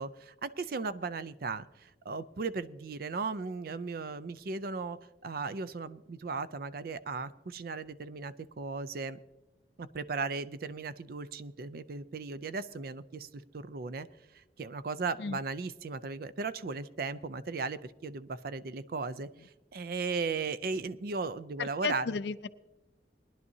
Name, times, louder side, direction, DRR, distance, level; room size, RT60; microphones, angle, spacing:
voice 1, 0.0-9.2 9.8-14.1 14.3-22.2, right 4 dB, 55° right, 15 dB, 0.5 m, -37 dB
voice 2, 21.6-22.5, left 5 dB, 70° left, 14 dB, 0.4 m, -34 dB
20.5 x 11.0 x 2.7 m, 1.0 s
head